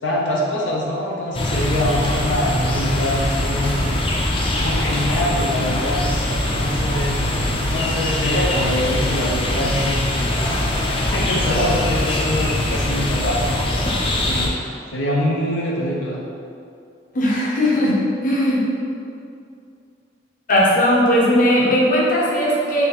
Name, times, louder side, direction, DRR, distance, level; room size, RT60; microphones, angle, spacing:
voice 1, 0.0-4.0 4.6-6.0 6.5-10.5 11.1-14.5 14.9-16.2, left 1 dB, 90° left, -4 dB, 0.6 m, -24 dB
sound 1, 1.3-14.5, left 1 dB, 30° left, 0.5 m, -22 dB
voice 2, 17.1-18.6 20.5-22.9, equal, 50° left, -4 dB, 0.8 m, -18 dB
3.4 x 3.2 x 4.6 m, 2.4 s
head